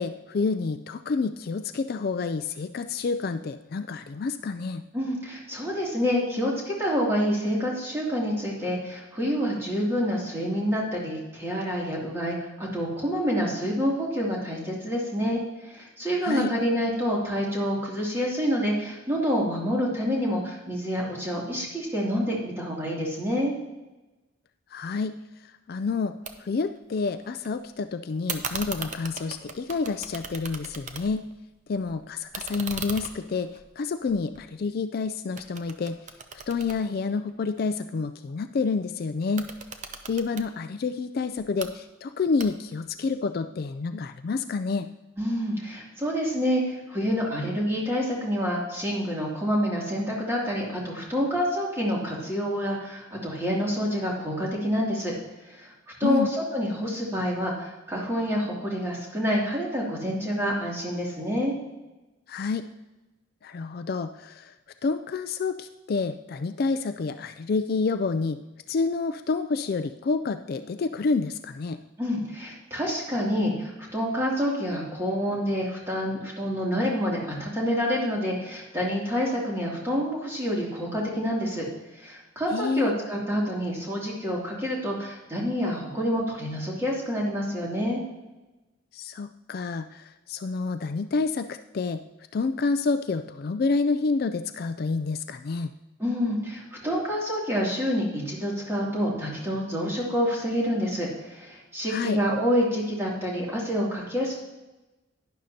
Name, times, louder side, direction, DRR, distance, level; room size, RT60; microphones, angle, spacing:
voice 1, 0.0-4.8 16.2-16.5 24.7-26.1 26.4-31.3 31.7-36.0 36.5-39.5 40.1-44.9 56.0-56.3 62.3-62.7 63.4-64.5 64.8-68.4 68.7-71.8 82.5-82.9 88.9-92.0 92.3-95.7 101.9-102.2, left 4 dB, 50° left, 10 dB, 0.4 m, -28 dB
voice 2, 4.9-23.5 45.2-55.1 55.5-55.7 56.0-61.6 72.0-81.7 81.9-88.0 96.0-104.3, equal, 15° right, -4 dB, 2.6 m, -27 dB
sound 1, 26.3-26.4 26.6-27.5 28.3-31.3 31.7-34.9 35.4-37.6 39.2-40.5 41.4-41.7 42.4-42.9, right 5 dB, 40° right, 0.7 m, -38 dB
11.5 x 10.5 x 2.8 m, 1.1 s
head